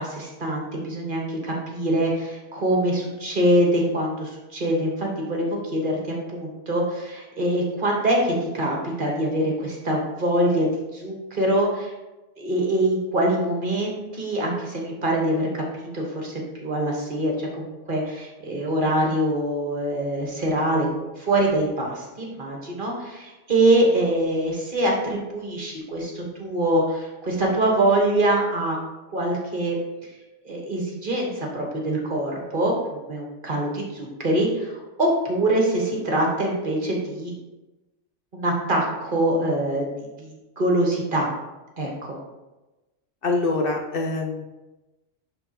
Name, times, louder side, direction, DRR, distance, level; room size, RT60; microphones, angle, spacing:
voice 1, 0.0-11.9 12.4-28.8 29.1-29.8 30.4-37.3 38.3-39.9 40.2-41.3 41.8-42.2, right 1 dB, 45° right, -1 dB, 1.4 m, -24 dB
voice 2, 43.2-44.5, left 3 dB, 55° left, 0 dB, 0.8 m, -24 dB
11.0 x 3.8 x 2.9 m, 1.1 s
omnidirectional pair, 1.3 m